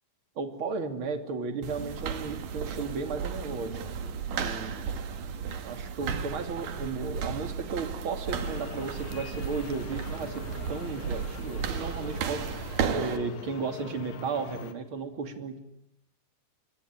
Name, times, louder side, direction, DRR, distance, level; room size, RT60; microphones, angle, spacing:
voice 1, 0.4-5.0 5.6-12.5 12.9-15.6, right 4 dB, 35° right, 7 dB, 3.1 m, -34 dB
sound 1, 1.6-13.2, right 6 dB, 60° right, 3.3 m, -34 dB
sound 2, 8.3-14.7, left 8 dB, 70° left, 3.3 m, -44 dB
27.0 x 24.0 x 9.0 m, 0.78 s
omnidirectional pair, 4.3 m